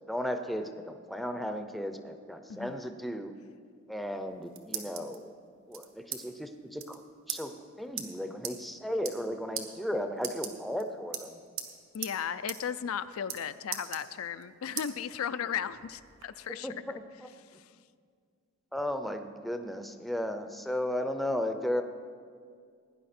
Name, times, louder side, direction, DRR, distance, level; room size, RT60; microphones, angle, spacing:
voice 1, 0.1-3.3 3.9-5.3 5.7-7.0 7.3-11.4 16.6-17.3 18.7-21.8, left 1 dB, ahead, 7 dB, 0.6 m, -35 dB
sound 1, 4.1-5.2 5.7-6.2 6.5-6.6 6.8-7.0 7.3-7.4 8.0-8.1 8.4-8.6 8.9-9.3 9.6-9.7 10.2-10.8 11.1-11.7 12.0-12.2 12.5-12.6 12.9-13.4 13.7-14.4 14.8-14.9 15.4-16.3, right 9 dB, 65° right, 1.2 m, -38 dB
voice 2, 11.9-16.7 17.5-17.6, left 8 dB, 75° left, 12 dB, 0.4 m, -35 dB
17.5 x 10.0 x 4.3 m, 2.1 s
head